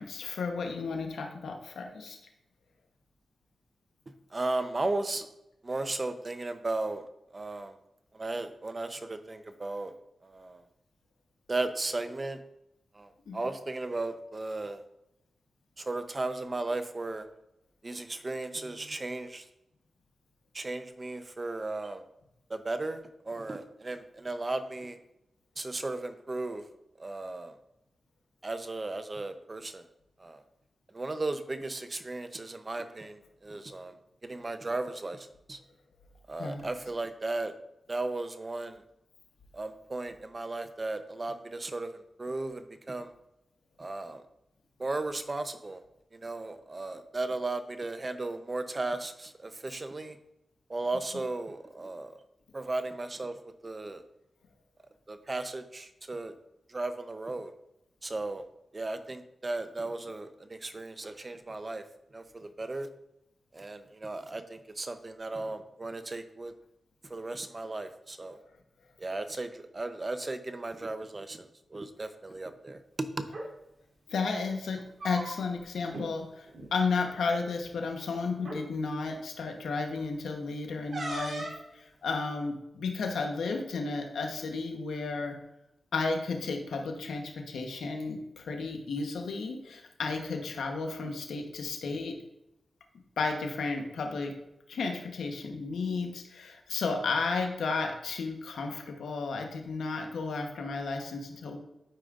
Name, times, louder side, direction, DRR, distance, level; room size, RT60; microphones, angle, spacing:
voice 1, 0.0-2.2 13.3-13.4 36.4-36.7 74.1-81.5 81.7-85.3 85.9-92.1 93.2-94.3 94.7-101.6, left 4 dB, 85° left, 3 dB, 1.1 m, -33 dB
voice 2, 4.3-5.3 5.6-7.0 7.3-7.7 8.1-9.9 10.2-10.6 11.5-12.4 12.9-14.8 15.8-17.3 17.8-19.4 20.5-22.0 22.5-25.0 25.6-26.6 27.0-27.5 28.4-29.8 30.2-30.4 30.9-33.9 34.2-35.6 36.3-37.5 37.9-38.8 39.5-43.1 43.8-44.2 44.8-45.8 46.1-50.2 50.7-52.2 52.5-53.4 53.6-54.0 55.1-56.3 56.7-57.5 58.0-58.4 58.7-61.8 62.1-62.9 63.5-66.5 67.1-68.4 69.0-73.3, right 2 dB, 35° right, 9 dB, 0.7 m, -35 dB
sound 1, 73.3-73.5 74.7-75.6 75.9-76.1 76.5-76.7 77.7-77.8 78.4-78.6 80.9-81.6, right 1 dB, 60° right, 2.1 m, -37 dB
11.5 x 5.0 x 2.5 m, 0.86 s
cardioid pair, 55°, 0 cm